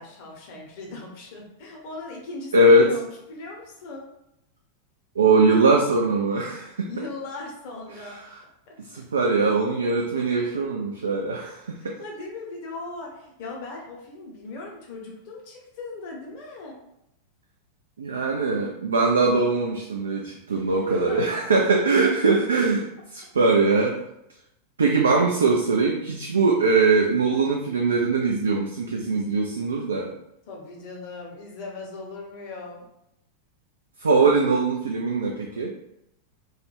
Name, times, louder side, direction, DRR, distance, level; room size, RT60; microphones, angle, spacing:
voice 1, 0.0-4.1 6.9-8.2 8.7-8.8 11.8-16.8 20.5-21.4 30.5-32.9, left 3 dB, 50° left, -1 dB, 0.8 m, -38 dB
voice 2, 2.5-2.9 5.2-6.9 8.8-12.0 18.0-24.0 24.8-30.1 34.0-35.7, right 3 dB, 70° right, 0 dB, 0.3 m, -21 dB
2.3 x 2.1 x 3.1 m, 0.82 s
figure-of-eight pair, 90°, 0 cm